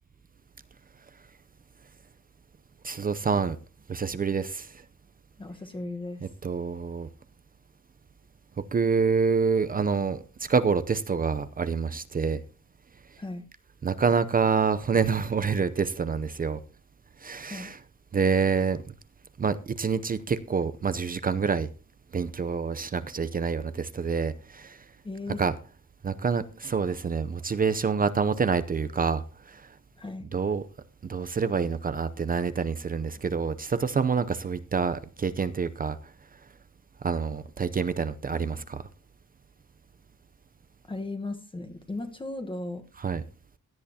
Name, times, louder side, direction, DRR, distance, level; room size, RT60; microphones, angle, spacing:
voice 1, 2.8-3.6 3.9-4.8 6.4-7.1 8.7-12.4 13.8-16.6 17.2-17.8 18.1-18.8 19.4-21.7 22.1-24.8 25.4-25.5 26.0-29.6 30.3-30.6 31.1-36.0 37.0-38.8 43.0-43.2, right 5 dB, 30° right, 0.6 m, -27 dB
voice 2, 5.4-6.3 13.2-13.4 17.4-17.7 25.0-25.4 30.0-30.3 40.9-42.9, left 2 dB, 15° left, 1.1 m, -36 dB
17.0 x 11.0 x 2.8 m
cardioid pair, 135°, 31 cm